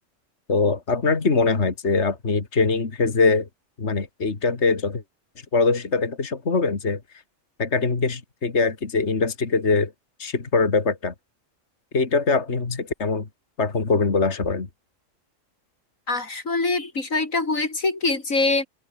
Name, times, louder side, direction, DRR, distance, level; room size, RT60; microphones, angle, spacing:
voice 1, 0.5-3.5 3.8-5.0 5.5-7.0 7.6-9.9 10.2-11.1 11.9-13.3 13.6-14.7, left 4 dB, 55° left, 2.6 m, -22 dB
voice 2, 16.1-18.7, left 3 dB, 80° left, 4.1 m, -24 dB
omnidirectional pair, 1.4 m